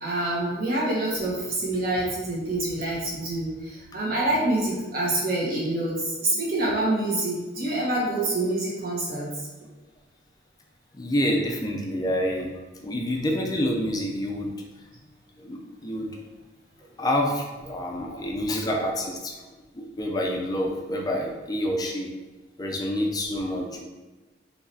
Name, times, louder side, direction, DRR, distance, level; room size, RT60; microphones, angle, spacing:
voice 1, 0.0-9.3 18.0-18.2, right 1 dB, 50° right, -5 dB, 1.2 m, -26 dB
voice 2, 10.9-12.5 12.8-14.6 15.4-16.2 17.0-19.4 19.7-22.1 22.6-23.8, equal, 20° left, 1 dB, 0.4 m, -27 dB
4.7 x 3.2 x 2.7 m, 1.2 s
head